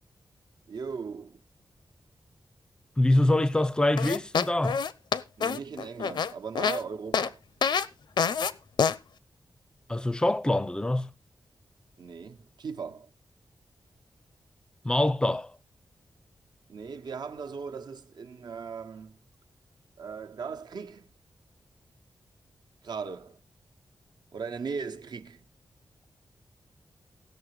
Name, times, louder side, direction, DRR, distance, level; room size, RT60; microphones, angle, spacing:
voice 1, 0.7-1.4 5.4-7.4 12.0-13.1 16.7-19.2 20.0-21.1 22.8-23.4 24.3-25.4, right 5 dB, 70° right, 1.1 m, -38 dB
voice 2, 3.0-4.8 9.9-11.1 14.8-15.5, left 1 dB, 10° left, 0.5 m, -24 dB
sound 1, 4.0-6.8 7.1-7.3 7.6-7.9 8.2-8.5 8.8-9.0, left 6 dB, 80° left, 0.7 m, -26 dB
16.5 x 6.9 x 4.8 m
wide cardioid pair, 170°, 8 cm